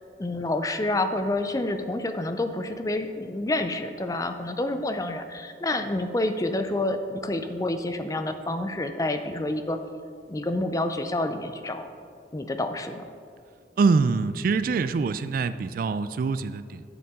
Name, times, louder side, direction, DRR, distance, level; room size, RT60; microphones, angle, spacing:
voice 1, 0.2-9.8 10.3-11.9 12.3-13.0, left 2 dB, 20° left, 8 dB, 0.5 m, -28 dB
voice 2, 13.8-16.8, right 4 dB, 50° right, 12 dB, 0.3 m, -24 dB
12.0 x 6.9 x 3.7 m, 2.2 s
head